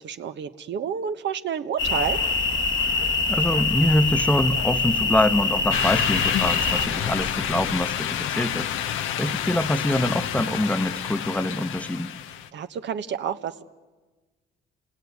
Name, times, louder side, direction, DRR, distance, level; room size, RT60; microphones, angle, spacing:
voice 1, 0.0-2.2 12.5-13.6, right 7 dB, 65° right, 9 dB, 1.2 m, -29 dB
sound 1, 1.8-6.9, left 4 dB, 70° left, 1.5 m, -24 dB
sound 2, 1.8-7.8, right 1 dB, 15° right, 1.3 m, -37 dB
voice 2, 3.3-8.7 9.2-12.1, left 1 dB, 5° left, 12 dB, 1.1 m, -24 dB
sound 3, 5.7-12.5, left 10 dB, 85° left, 0.9 m, -28 dB
28.0 x 19.0 x 9.5 m, 1.3 s
cardioid pair, 90°, 20 cm